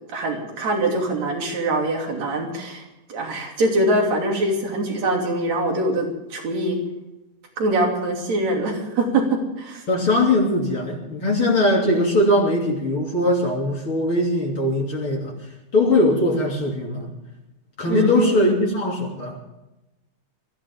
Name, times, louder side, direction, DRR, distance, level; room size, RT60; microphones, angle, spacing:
voice 1, 0.1-6.8 7.6-9.3 9.6-9.8 17.9-18.4, right 2 dB, 60° right, 1 dB, 4.3 m, -23 dB
voice 2, 9.9-15.3 15.7-17.1 17.8-19.4, left 1 dB, 40° left, -2 dB, 3.7 m, -20 dB
23.0 x 14.5 x 3.7 m, 0.97 s
omnidirectional pair, 3.6 m